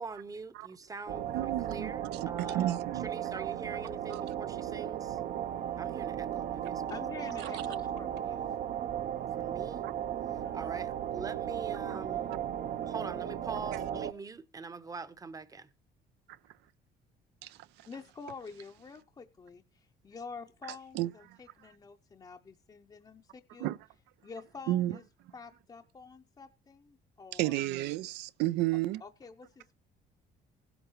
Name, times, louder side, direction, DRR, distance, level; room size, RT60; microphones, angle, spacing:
voice 1, 0.0-5.2 5.8-7.0 9.3-9.9 10.3-12.3 12.8-15.7, right 4 dB, 20° right, 0.8 m, -43 dB
sound 1, 1.1-14.1, right 10 dB, 60° right, 0.7 m, -36 dB
voice 2, 1.3-1.9 2.2-3.1 4.1-4.2 7.4-7.5 9.8-9.9 17.4-17.6 20.9-21.1 23.6-23.8 24.7-25.0 27.3-29.0, right 16 dB, 90° right, 0.4 m, -32 dB
voice 3, 6.9-8.6 10.4-10.8 17.9-23.8 24.2-25.0 25.3-27.6 29.0-29.7, left 5 dB, 25° left, 0.6 m, -48 dB
16.0 x 8.0 x 3.0 m
cardioid pair, 110°, 17 cm